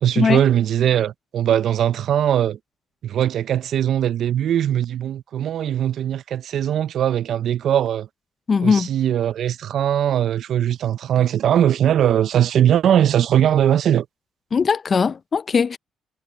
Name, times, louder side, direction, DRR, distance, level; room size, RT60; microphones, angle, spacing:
voice 1, 0.0-2.6 3.0-8.1 8.6-14.1, right 10 dB, 70° right, 0.4 m, -20 dB
voice 2, 8.5-8.9 14.5-15.8, left 5 dB, 40° left, 0.5 m, -19 dB
cardioid pair, 90°, 0 cm